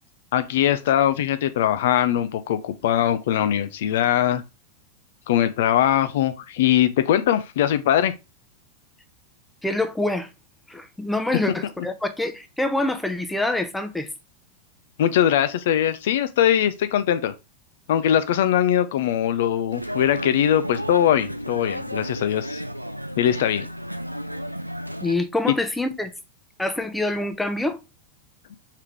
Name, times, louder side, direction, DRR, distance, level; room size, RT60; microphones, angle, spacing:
voice 1, 0.3-4.4 5.3-8.1 15.0-17.3 17.9-22.6 23.2-23.7, left 10 dB, 55° left, 0.4 m, -21 dB
voice 2, 9.6-10.3 10.7-14.1 25.0-26.1 26.6-27.8, left 2 dB, 5° left, 0.6 m, -26 dB
sound 1, 19.7-25.1, equal, 90° right, 0.3 m, -33 dB
4.6 x 3.4 x 3.3 m
figure-of-eight pair, 90°, 0 cm